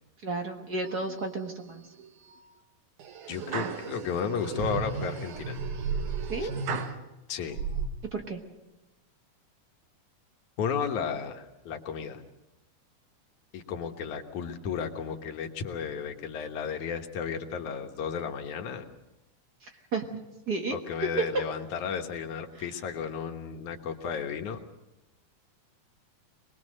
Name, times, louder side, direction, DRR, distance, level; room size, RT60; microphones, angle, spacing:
voice 1, 0.2-1.8 6.3-6.5 8.1-8.4 19.9-20.1 20.5-20.8, right 3 dB, 45° right, 4 dB, 1.5 m, -32 dB
sound 1, 0.8-1.5 2.0-2.4 3.0-7.0 7.5-7.9, right 5 dB, 75° right, 2.7 m, -34 dB
voice 2, 3.3-5.6 6.4-6.5 7.3-7.6 10.6-12.2 13.5-18.9 20.7-24.6, left 7 dB, 70° left, 5 dB, 2.7 m, -33 dB
23.0 x 21.0 x 6.5 m, 0.98 s
omnidirectional pair, 3.6 m